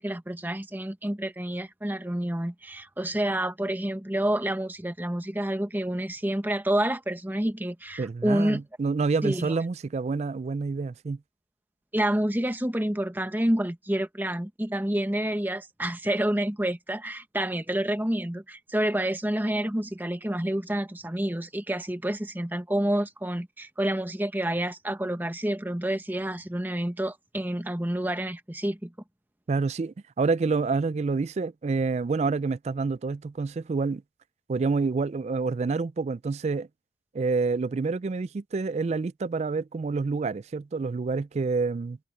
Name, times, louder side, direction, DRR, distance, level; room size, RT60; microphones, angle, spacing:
voice 1, 0.0-8.6 9.2-9.5 11.9-28.9, right 1 dB, 10° right, 1.0 m, -28 dB
voice 2, 8.0-11.2 29.5-34.0 34.5-36.7 37.1-42.0, right 4 dB, 35° right, 0.3 m, -28 dB
head